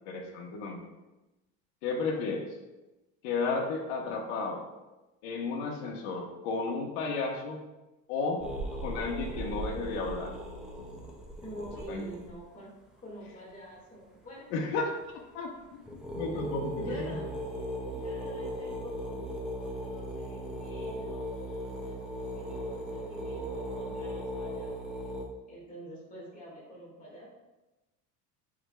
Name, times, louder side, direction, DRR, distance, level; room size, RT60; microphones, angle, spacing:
voice 1, 0.1-0.9 1.8-2.5 3.2-4.6 5.2-7.6 8.1-8.4 8.8-10.3 11.9-12.1 14.5-14.8 15.3-15.8 16.1-16.9, left 4 dB, 75° left, -1 dB, 1.2 m, -33 dB
sound 1, 8.4-12.4 15.1-15.2 15.6-15.7 15.8-25.3, equal, ahead, 0.3 m, -38 dB
voice 2, 11.4-14.5 16.3-17.3 17.9-25.0 25.5-27.3, equal, 20° left, -5 dB, 1.9 m, -47 dB
8.6 x 4.9 x 2.3 m, 1.0 s
cardioid pair, 175°, 36 cm